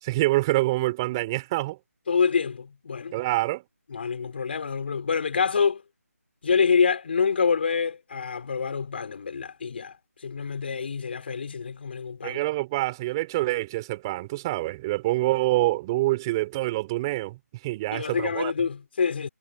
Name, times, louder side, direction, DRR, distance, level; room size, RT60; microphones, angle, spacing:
voice 1, 0.0-1.8 3.1-3.6 12.2-17.4 17.6-18.5, right 19 dB, 15° right, 4.3 m, -26 dB
voice 2, 2.1-3.2 3.9-5.8 6.4-10.0 10.2-12.4 17.9-19.3, left 6 dB, 40° left, 4.3 m, -26 dB
figure-of-eight pair, 160°, 9 cm